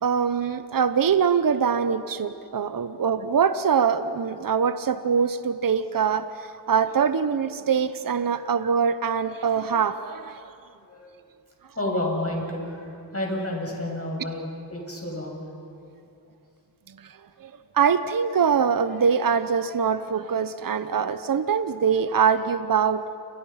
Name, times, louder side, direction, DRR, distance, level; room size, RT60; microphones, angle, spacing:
voice 1, 0.0-10.4 16.9-17.5 17.7-23.0, right 6 dB, 45° right, 12 dB, 0.9 m, -23 dB
voice 2, 11.8-14.4 14.7-15.4, left 1 dB, 30° left, 0 dB, 7.4 m, -30 dB
29.0 x 24.0 x 5.8 m, 2.6 s
cardioid pair, 55°, 46 cm